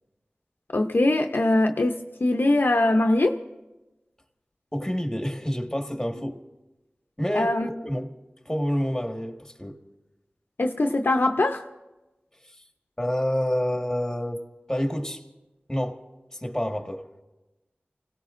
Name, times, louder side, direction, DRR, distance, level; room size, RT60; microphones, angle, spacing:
voice 1, 0.7-3.4 7.3-7.7 10.6-11.6, left 2 dB, 65° left, 5 dB, 0.7 m, -22 dB
voice 2, 4.7-6.4 7.2-8.1 8.4-9.8 12.4-12.6 13.0-14.4 14.7-15.2 15.7-16.0 16.3-17.0, equal, 10° left, 4 dB, 1.5 m, -28 dB
30.0 x 17.5 x 2.6 m, 1.1 s
wide cardioid pair, 55°, 4 cm